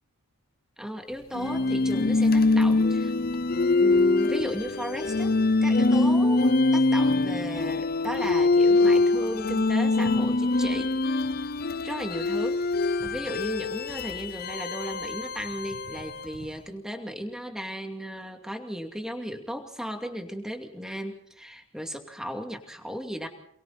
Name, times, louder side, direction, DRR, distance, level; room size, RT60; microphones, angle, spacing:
voice 1, 0.8-3.1 3.8-5.4 5.6-10.9 11.8-12.6 13.0-23.3, equal, 5° right, 4 dB, 2.5 m, -35 dB
sound 1, 1.3-16.4, left 3 dB, 45° left, 0.7 m, -24 dB
28.0 x 22.5 x 4.2 m, 0.66 s
head